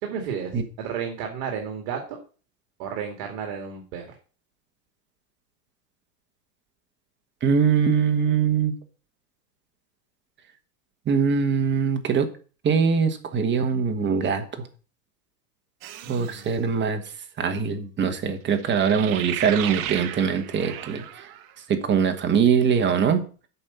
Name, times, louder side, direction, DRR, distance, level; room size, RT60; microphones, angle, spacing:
voice 1, 0.0-2.2 2.8-4.2 16.0-16.5, right 7 dB, 60° right, 3 dB, 2.3 m, -32 dB
voice 2, 7.4-8.7 11.0-12.3 12.6-14.7 16.1-17.0 17.4-21.3 21.7-23.2, right 6 dB, 20° right, 7 dB, 1.3 m, -22 dB
sound 1, 15.8-16.5 18.6-21.5, right 12 dB, 40° right, 1.0 m, -34 dB
8.5 x 5.4 x 6.8 m, 0.38 s
supercardioid pair, 130°, 49 cm